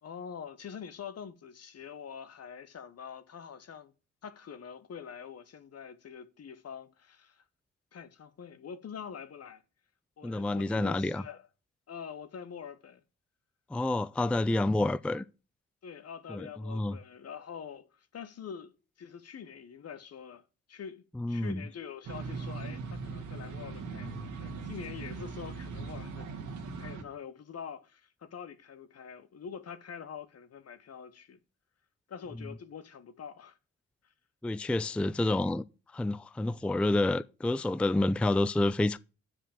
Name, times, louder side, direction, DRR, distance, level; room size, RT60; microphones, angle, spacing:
voice 1, 0.0-3.9 4.2-7.4 7.9-9.6 10.2-11.5 11.9-13.0 15.8-18.7 19.0-20.4 20.7-26.4 26.8-31.4 32.1-33.6, left 7 dB, 55° left, 1.1 m, -45 dB
voice 2, 10.2-11.2 13.7-15.2 16.3-17.0 21.2-21.6 34.4-35.7 35.9-39.0, left 2 dB, 5° left, 0.4 m, -28 dB
sound 1, 22.0-27.0, right 4 dB, 70° right, 1.8 m, -40 dB
7.7 x 5.0 x 7.3 m
supercardioid pair, 55°, 31 cm